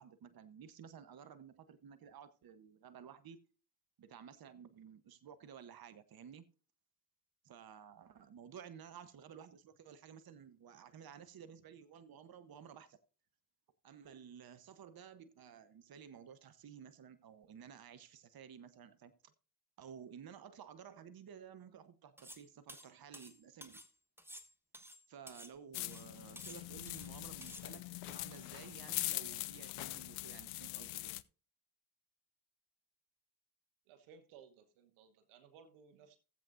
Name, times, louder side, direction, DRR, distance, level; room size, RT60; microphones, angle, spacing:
voice 1, 0.0-3.4 4.0-6.4 7.4-13.0 13.8-19.3 19.8-23.8 25.1-31.2, right 8 dB, 45° right, 1.0 m, -54 dB
sound 1, 22.2-22.4 22.7-23.9 24.2-25.5 25.8-26.1 26.4-27.1 27.4-27.7, equal, 5° right, 1.1 m, -53 dB
sound 2, 25.7-31.2, left 20 dB, 80° left, 0.5 m, -42 dB
voice 2, 33.9-36.2, right 7 dB, 80° right, 1.2 m, -60 dB
16.5 x 7.7 x 2.6 m
hypercardioid pair, 40°, 49 cm